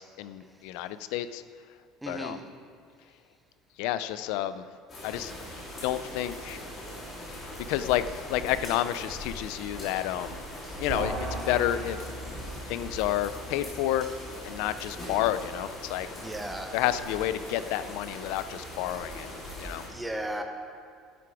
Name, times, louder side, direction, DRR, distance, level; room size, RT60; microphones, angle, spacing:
voice 1, 0.0-1.4 2.1-2.4 3.8-4.6 5.0-5.3 5.8-6.6 7.7-10.4 10.8-12.0 12.7-14.1 14.4-16.1 16.7-19.3 19.6-19.8, left 13 dB, 70° left, 13 dB, 0.5 m, -30 dB
voice 2, 2.0-2.4 7.2-7.6 16.2-16.8 19.9-20.4, right 1 dB, 5° right, 4 dB, 0.7 m, -36 dB
sound 1, 4.9-19.9, equal, 25° left, 3.7 m, -41 dB
sound 2, 10.9-16.4, right 2 dB, 35° right, 2.6 m, -40 dB
12.0 x 11.0 x 4.8 m, 2.1 s
cardioid pair, 180°, 0 cm